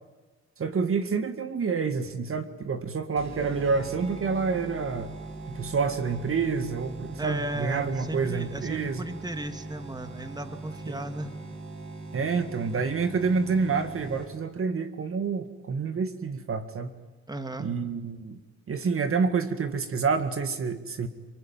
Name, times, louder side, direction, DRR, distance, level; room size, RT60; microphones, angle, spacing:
voice 1, 0.6-5.1 5.5-9.0 10.9-11.0 12.1-16.9 17.6-18.4 18.7-21.1, right 5 dB, 45° right, 9 dB, 2.0 m, -28 dB
sound 1, 3.2-14.6, right 2 dB, 65° right, 7.3 m, -41 dB
voice 2, 7.2-11.3 17.3-17.7, right 1 dB, 15° right, 8 dB, 2.3 m, -35 dB
29.5 x 22.0 x 9.0 m, 1.2 s
cardioid pair, 90°, 30 cm